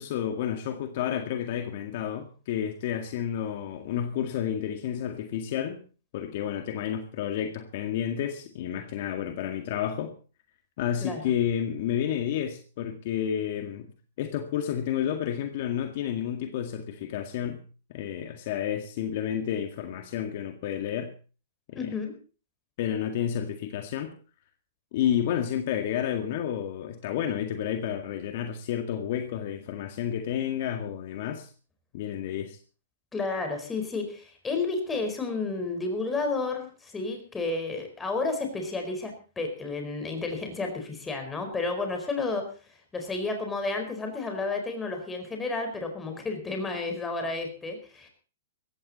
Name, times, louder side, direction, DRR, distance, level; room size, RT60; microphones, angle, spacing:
voice 1, 0.0-5.8 6.1-10.1 10.8-13.9 14.2-17.6 17.9-21.1 21.7-21.9 22.8-24.1 24.9-31.5 31.9-32.6, left 9 dB, 55° left, 6 dB, 2.0 m, -30 dB
voice 2, 21.7-22.1 33.1-42.4 42.9-48.1, left 3 dB, 10° left, 4 dB, 4.5 m, -31 dB
17.5 x 15.0 x 4.2 m, 0.37 s
hypercardioid pair, 140°, 0 cm